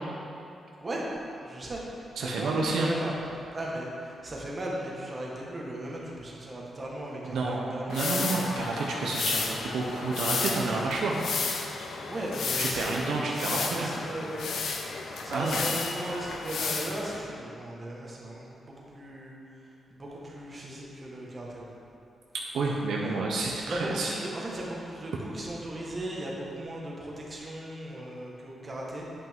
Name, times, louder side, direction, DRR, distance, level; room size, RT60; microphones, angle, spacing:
voice 1, 1.4-3.1 3.5-8.5 11.9-14.5 15.2-21.7 23.4-29.1, right 1 dB, 35° right, -3 dB, 1.5 m, -37 dB
voice 2, 2.2-2.9 7.3-11.2 12.6-13.9 15.3-15.8 22.5-24.1, right 3 dB, 85° right, -2 dB, 0.7 m, -30 dB
sound 1, 7.9-17.2, left 4 dB, 70° left, 0.7 m, -33 dB
8.4 x 5.8 x 3.6 m, 2.7 s
cardioid pair, 85°, 0 cm